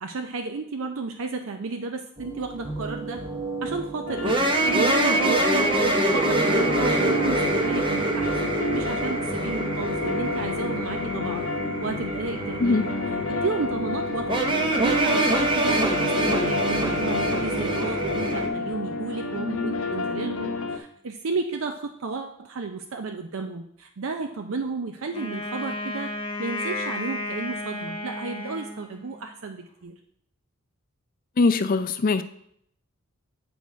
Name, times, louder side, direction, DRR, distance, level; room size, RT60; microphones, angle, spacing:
voice 1, 0.0-3.3 3.6-5.8 6.1-11.5 11.8-12.9 13.3-14.3 14.7-26.1 26.4-30.0, right 4 dB, 65° right, 5 dB, 0.5 m, -33 dB
sound 1, 2.2-18.5, right 2 dB, 25° right, 0.8 m, -25 dB
sound 2, 4.1-20.8, left 4 dB, 70° left, 0.8 m, -31 dB
Wind instrument woodwind instrument, 25.1-29.3, left 2 dB, 25° left, 1.2 m, -33 dB
voice 2, 31.4-32.2, left 3 dB, 40° left, 11 dB, 0.4 m, -21 dB
7.8 x 5.2 x 4.5 m, 0.70 s
head